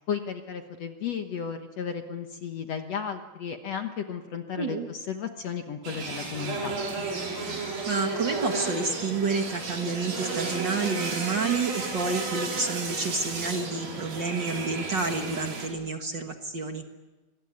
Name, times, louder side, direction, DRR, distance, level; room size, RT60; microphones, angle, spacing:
voice 1, 0.0-6.8, left 7 dB, 60° left, 6 dB, 1.8 m, -34 dB
sound 1, 5.8-15.7, right 3 dB, 70° right, 6.4 m, -33 dB
voice 2, 7.6-16.8, right 4 dB, 50° right, 4 dB, 1.4 m, -29 dB
26.0 x 21.0 x 9.5 m, 1.2 s
omnidirectional pair, 4.3 m